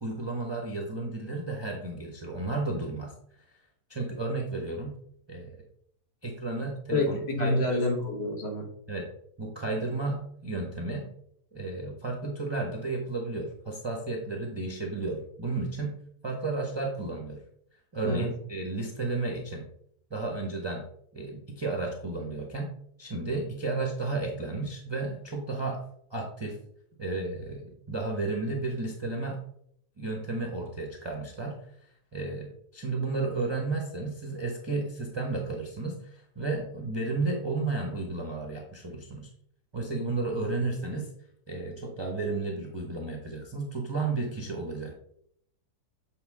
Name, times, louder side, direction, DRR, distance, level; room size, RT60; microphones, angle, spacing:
voice 1, 0.0-3.1 3.9-4.9 5.3-5.5 6.2-7.9 8.9-9.1 9.4-11.1 11.5-16.0 16.2-17.4 17.9-19.6 20.1-20.8 21.1-22.7 23.0-25.8 26.1-26.6 27.0-29.4 30.0-31.6 32.1-39.3 39.7-41.1 41.5-44.9, right 3 dB, 20° right, 0 dB, 0.8 m, -33 dB
voice 2, 6.9-8.7 18.0-18.3, left 2 dB, 40° left, 2 dB, 1.4 m, -28 dB
8.0 x 4.5 x 3.6 m, 0.69 s
omnidirectional pair, 1.8 m